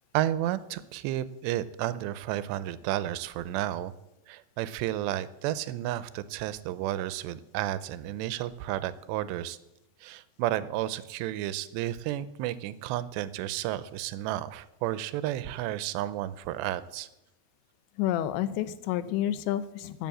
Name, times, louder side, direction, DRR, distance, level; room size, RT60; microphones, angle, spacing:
voice 1, 0.1-3.9 4.3-9.6 10.0-17.1, right 13 dB, 85° right, 16 dB, 2.7 m, -32 dB
voice 2, 18.0-20.1, left 12 dB, 90° left, 14 dB, 3.0 m, -29 dB
12.5 x 7.7 x 7.6 m, 0.90 s
omnidirectional pair, 5.1 m